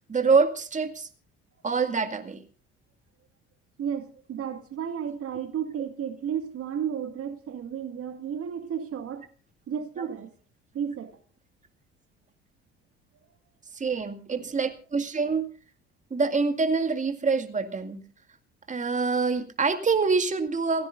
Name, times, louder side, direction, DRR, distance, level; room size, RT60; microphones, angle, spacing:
voice 1, 0.1-1.1 1.6-2.4 13.7-15.5 16.1-18.0 18.7-20.9, right 4 dB, 20° right, 2.0 m, -25 dB
voice 2, 3.8-9.3 9.7-10.3 10.7-11.2 14.3-14.5, right 8 dB, 45° right, 1.9 m, -33 dB
29.5 x 15.5 x 2.6 m
figure-of-eight pair, 55°, 33 cm